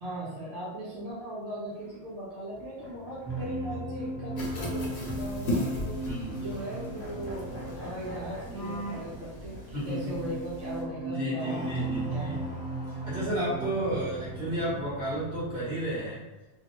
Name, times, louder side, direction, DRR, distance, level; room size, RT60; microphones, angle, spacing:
voice 1, 0.0-6.0 6.4-12.5, right 1 dB, 85° right, -7 dB, 1.1 m, -39 dB
sound 1, 1.7-1.9 2.5-5.4 5.7-5.9 6.2-6.4 6.6-9.1 9.5-9.6 12.8-13.8, right 1 dB, 15° left, 0.8 m, -44 dB
sound 2, 3.3-16.0, right 2 dB, 10° right, 0.4 m, -37 dB
sound 3, 4.4-10.8, left 1 dB, 70° left, 1.0 m, -38 dB
voice 2, 6.0-6.4 9.7-10.3 11.0-12.4 12.9-16.2, right 1 dB, 55° right, -9 dB, 1.2 m, -32 dB
2.7 x 2.1 x 2.9 m, 1.1 s
omnidirectional pair, 1.1 m